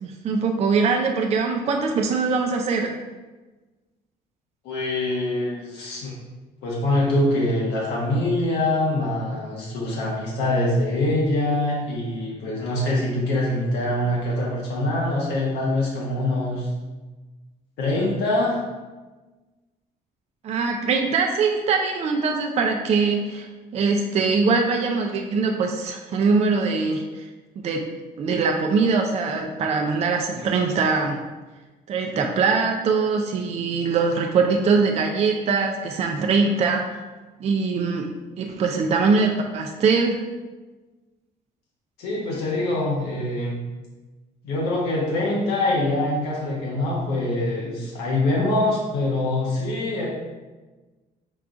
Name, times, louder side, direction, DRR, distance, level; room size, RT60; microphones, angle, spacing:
voice 1, 0.0-2.9 20.4-23.5 23.7-27.2 27.6-27.9 28.2-31.2 31.9-36.8 37.4-38.1 38.4-40.2, right 4 dB, 40° right, 2 dB, 0.4 m, -22 dB
voice 2, 4.6-6.1 6.6-16.7 17.8-18.6 42.0-43.6 44.4-50.1, left 1 dB, 80° left, -4 dB, 1.1 m, -24 dB
4.6 x 2.3 x 3.8 m, 1.2 s
cardioid pair, 110°, 17 cm